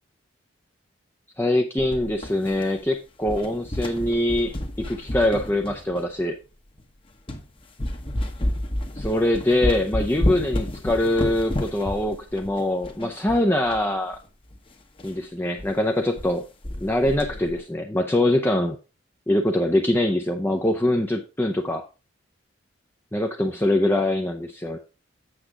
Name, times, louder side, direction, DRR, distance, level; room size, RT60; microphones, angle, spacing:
voice 1, 1.4-6.3 9.0-14.2 15.0-16.4 16.8-18.8 19.3-21.8 23.1-24.8, left 1 dB, 10° left, 3 dB, 0.6 m, -23 dB
sound 1, 1.8-2.9 3.2-6.2 6.8-6.9 7.3-7.5 7.8-13.9 14.1-14.2 14.5-14.6 15.0-15.2 15.6-15.7 16.0-16.4 16.6-17.6, left 1 dB, 25° left, 1.0 m, -30 dB
8.0 x 7.0 x 3.7 m, 0.31 s
head